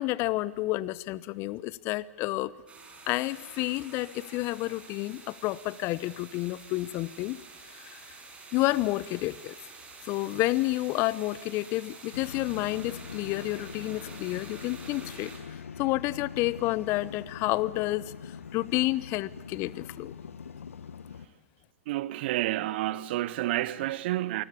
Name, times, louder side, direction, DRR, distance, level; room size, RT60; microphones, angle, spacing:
voice 1, 0.0-2.5 3.1-7.4 7.7-8.0 8.5-9.6 10.0-15.3 15.8-18.1 18.5-20.1, left 18 dB, 35° left, 0.9 m, -30 dB
sound 1, 2.7-15.4, right 4 dB, 15° right, 6.2 m, -48 dB
sound 2, 12.1-21.3, left 7 dB, 75° left, 1.2 m, -43 dB
voice 2, 21.9-24.4, right 15 dB, 50° right, 1.1 m, -29 dB
28.0 x 20.5 x 8.4 m
figure-of-eight pair, 110°, 7 cm